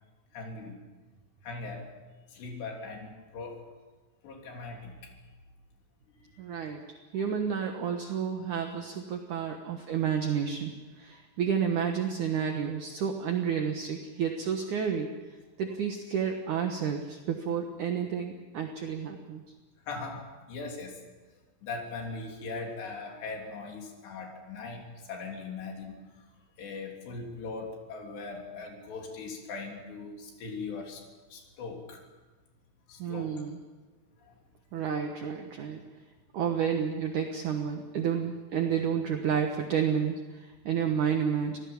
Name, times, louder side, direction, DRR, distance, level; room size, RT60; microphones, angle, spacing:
voice 1, 0.3-0.8 1.4-1.9 2.3-3.6 4.2-5.1 19.9-21.0 21.6-24.8 25.1-26.0 26.6-31.0 31.3-32.0 32.9-33.4, left 3 dB, 85° left, 1 dB, 5.5 m, -40 dB
voice 2, 6.4-6.8 7.1-10.7 11.0-15.1 15.6-19.4 33.0-33.6 34.7-35.8 36.3-41.6, right 7 dB, 60° right, 4 dB, 2.4 m, -30 dB
27.0 x 18.5 x 7.3 m, 1.3 s
omnidirectional pair, 4.7 m